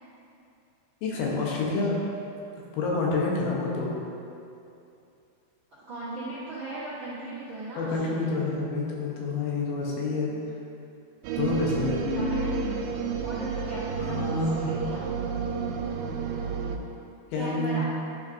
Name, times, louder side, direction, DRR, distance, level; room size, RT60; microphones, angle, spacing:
voice 1, 1.0-2.0 2.7-3.9 7.8-10.3 11.4-12.0 14.0-14.7 17.3-17.8, left 3 dB, 85° left, -3 dB, 3.0 m, -28 dB
voice 2, 5.9-8.4 10.3-10.4 12.1-12.7 13.2-15.0 17.3-17.8, right 2 dB, 65° right, -12 dB, 1.2 m, -38 dB
sound 1, 11.2-16.8, right 4 dB, 85° right, 2.4 m, -30 dB
10.5 x 5.4 x 2.7 m, 2.7 s
omnidirectional pair, 4.3 m